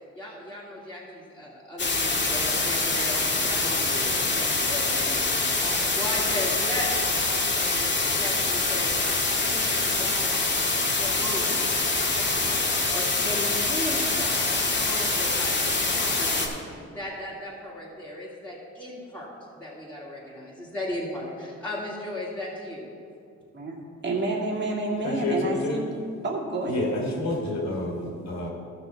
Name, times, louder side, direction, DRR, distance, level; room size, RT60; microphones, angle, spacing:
voice 1, 0.2-7.0 7.5-11.7 12.2-22.9, left 1 dB, 5° left, -9 dB, 2.4 m, -36 dB
sound 1, 1.8-16.5, left 3 dB, 40° left, 1.8 m, -25 dB
voice 2, 23.5-25.9 26.2-27.0, right 2 dB, 35° right, -2 dB, 2.3 m, -29 dB
voice 3, 25.0-25.8 26.7-28.5, left 2 dB, 65° left, -1 dB, 2.7 m, -29 dB
14.5 x 6.1 x 4.5 m, 2.5 s
cardioid pair, 90°, 30 cm